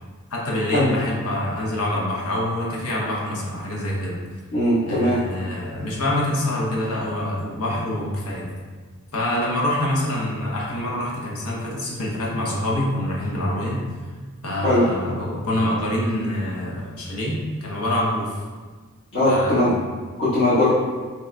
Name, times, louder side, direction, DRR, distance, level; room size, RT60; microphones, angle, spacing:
voice 1, 0.3-4.2 4.8-8.5 9.1-13.9 14.4-18.4 19.2-19.8, left 1 dB, 85° left, -3 dB, 0.9 m, -25 dB
voice 2, 4.5-5.2 14.6-14.9 19.1-19.8 20.2-20.7, left 1 dB, 55° left, -15 dB, 1.4 m, -19 dB
6.0 x 2.9 x 2.3 m, 1.5 s
head